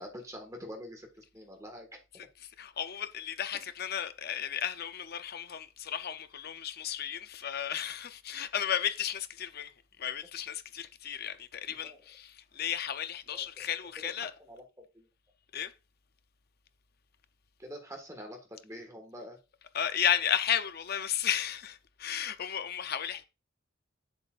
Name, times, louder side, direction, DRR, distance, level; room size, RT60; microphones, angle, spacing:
voice 1, 0.0-1.9 2.1-2.3 11.8-12.0 13.3-13.7 14.2-15.1 17.6-19.4, equal, 15° right, 1.6 m, -46 dB
voice 2, 2.1-14.3 15.5-15.7 19.7-23.2, left 9 dB, 50° left, 0.6 m, -34 dB
7.5 x 7.1 x 2.5 m
head